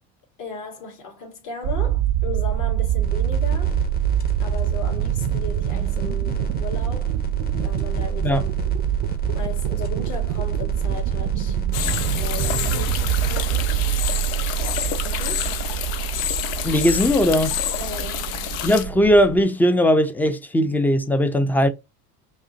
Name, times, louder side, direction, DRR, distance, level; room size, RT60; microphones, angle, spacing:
voice 1, 0.4-3.8 4.4-7.2 7.6-8.5 9.3-11.6 12.0-13.8 14.6-15.6 17.8-18.3, left 4 dB, 45° left, 2.1 m, -36 dB
sound 1, 1.6-19.4, right 13 dB, 50° right, 0.6 m, -25 dB
sound 2, 3.0-13.3, left 3 dB, 20° left, 1.1 m, -33 dB
sound 3, 11.7-18.8, left 11 dB, 65° left, 0.7 m, -28 dB
voice 2, 16.6-17.6 18.6-21.7, equal, 5° left, 0.5 m, -19 dB
5.5 x 2.1 x 2.8 m
hypercardioid pair, 85°, 44 cm